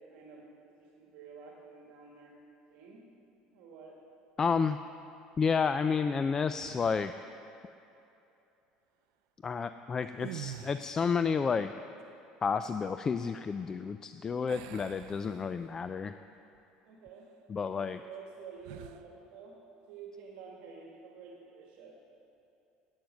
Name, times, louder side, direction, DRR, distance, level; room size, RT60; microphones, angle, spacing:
voice 1, 0.0-2.3 2.7-3.0 3.5-3.9 16.8-17.3 17.8-19.5 19.9-21.9, right 5 dB, 70° right, -1 dB, 1.8 m, -50 dB
voice 2, 4.4-4.8 5.4-7.1 9.4-11.7 12.4-16.1 17.5-18.0, left 5 dB, 25° left, 10 dB, 0.3 m, -30 dB
sound 1, 6.5-7.2 10.1-11.2 14.5-15.9 16.4-16.6 18.6-19.1, right 12 dB, 90° right, 0.5 m, -46 dB
11.5 x 9.4 x 7.7 m, 2.9 s
cardioid pair, 135°, 2 cm